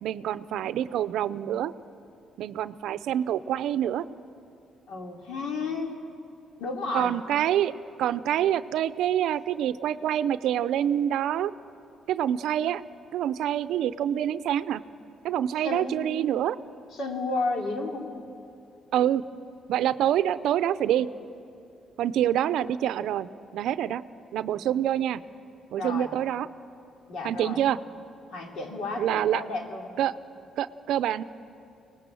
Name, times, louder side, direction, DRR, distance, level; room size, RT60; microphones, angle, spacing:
voice 1, 0.0-1.7 2.4-4.1 6.9-7.7 8.0-11.5 12.1-12.8 13.1-14.8 15.2-16.6 18.9-19.2 19.7-21.1 22.0-24.0 24.3-25.2 25.7-26.5 27.2-27.8 29.0-29.4 30.0-30.1 30.6-31.2, right 11 dB, 80° right, 14 dB, 0.5 m, -26 dB
voice 2, 4.9-6.0 6.6-7.1 15.6-16.1 16.9-18.1 25.8-26.1 27.1-27.6 28.3-29.9, left 3 dB, 75° left, 2 dB, 2.8 m, -32 dB
24.5 x 19.0 x 7.7 m, 2.6 s
cardioid pair, 90°, 0 cm